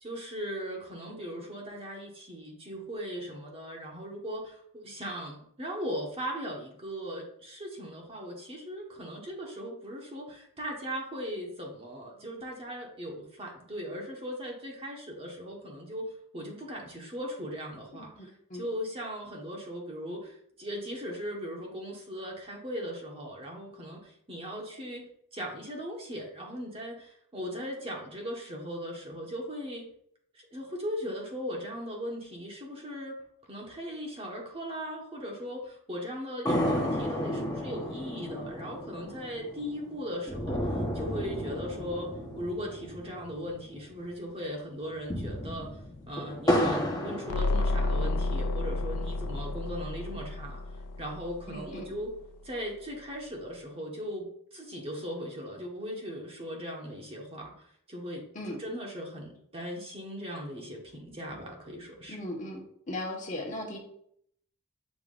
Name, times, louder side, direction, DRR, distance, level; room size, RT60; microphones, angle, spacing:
voice 1, 0.0-25.1 25.3-29.9 30.4-33.2 33.5-45.8 46.1-50.6 51.0-52.1 52.4-57.5 57.9-62.2, equal, 25° right, -1 dB, 1.4 m, -38 dB
voice 2, 18.2-18.6 51.5-51.9 58.3-58.6 62.1-62.6 62.9-63.8, left 1 dB, 35° left, -1 dB, 1.3 m, -37 dB
sound 1, 36.5-44.1 44.3-44.4 44.9-48.2 48.7-49.7, equal, 15° left, 1.2 m, -33 dB
sound 2, 47.3-52.0, left 2 dB, 85° left, 0.4 m, -31 dB
7.4 x 5.8 x 2.5 m, 0.68 s
head